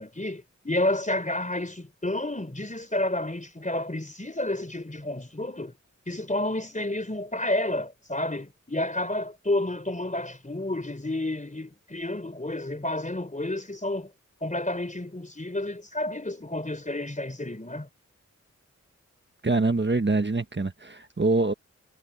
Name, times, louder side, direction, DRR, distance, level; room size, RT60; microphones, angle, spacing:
voice 1, 0.0-5.8 6.1-14.1 14.4-17.9, left 1 dB, 25° left, 4.1 m, -30 dB
voice 2, 19.4-21.5, right 3 dB, 35° right, 1.4 m, -24 dB
cardioid pair, 40°, 30 cm